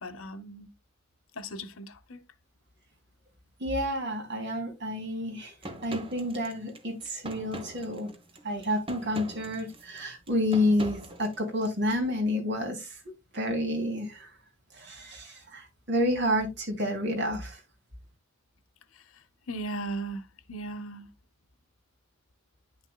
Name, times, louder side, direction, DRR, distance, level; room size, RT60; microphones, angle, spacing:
voice 1, 0.0-0.7 1.4-2.2 19.5-20.2 20.5-21.1, right 1 dB, 85° left, 1.0 m, -37 dB
voice 2, 3.6-5.5 5.8-8.1 8.4-13.0 13.3-14.3 14.7-17.6, left 1 dB, 60° right, 3.2 m, -29 dB
sound 1, 5.6-12.0, right 1 dB, 25° right, 1.2 m, -42 dB
10.5 x 6.1 x 2.3 m
head